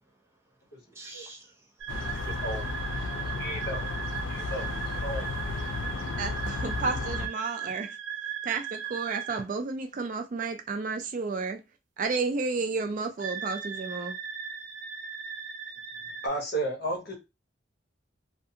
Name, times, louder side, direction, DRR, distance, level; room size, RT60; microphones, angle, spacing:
voice 1, 0.0-2.4, right 2 dB, 15° right, 0.7 m, -52 dB
sound 1, 1.8-9.4 13.2-16.3, right 8 dB, 70° right, 0.7 m, -37 dB
sound 2, 1.9-7.3, left 3 dB, 85° left, 0.4 m, -33 dB
voice 2, 2.4-2.7 3.4-3.8 4.3-4.6 5.0-5.3 16.2-17.1, right 1 dB, 55° left, 0.9 m, -33 dB
voice 3, 6.2-8.0 8.4-11.7 12.0-14.2, right 4 dB, 45° right, 0.3 m, -32 dB
2.5 x 2.3 x 2.7 m
head